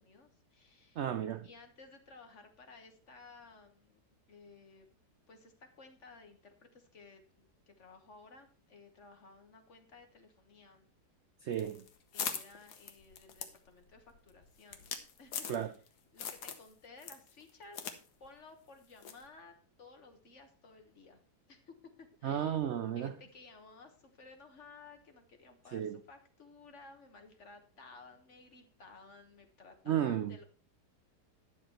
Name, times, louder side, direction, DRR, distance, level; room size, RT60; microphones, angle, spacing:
voice 1, 0.0-1.0 1.4-4.0 4.3-4.9 5.3-10.9 12.1-14.9 15.2-15.7 16.1-17.8 18.2-21.2 21.5-22.7 22.9-30.4, left 3 dB, 45° left, 1.6 m, -56 dB
voice 2, 1.0-1.5 11.4-11.8 15.5-15.7 22.2-23.1 25.7-26.0 29.9-30.4, right 10 dB, 70° right, 0.6 m, -33 dB
sound 1, 11.5-15.9 16.2-16.7 17.0-18.0 18.2-18.3 19.0-19.3, left 7 dB, 70° left, 1.5 m, -41 dB
10.0 x 7.1 x 4.4 m
omnidirectional pair, 1.8 m